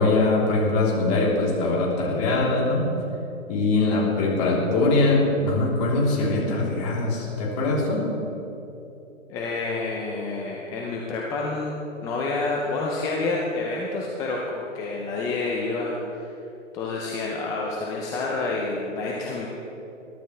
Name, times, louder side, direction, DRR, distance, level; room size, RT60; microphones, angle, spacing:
voice 1, 0.0-2.9 3.5-8.1, left 2 dB, 30° left, -4 dB, 3.4 m, -22 dB
voice 2, 9.3-15.9 16.2-16.3 16.7-19.5, left 3 dB, 10° left, -2 dB, 0.6 m, -28 dB
21.5 x 12.0 x 3.3 m, 3.0 s
hypercardioid pair, 140°, 38 cm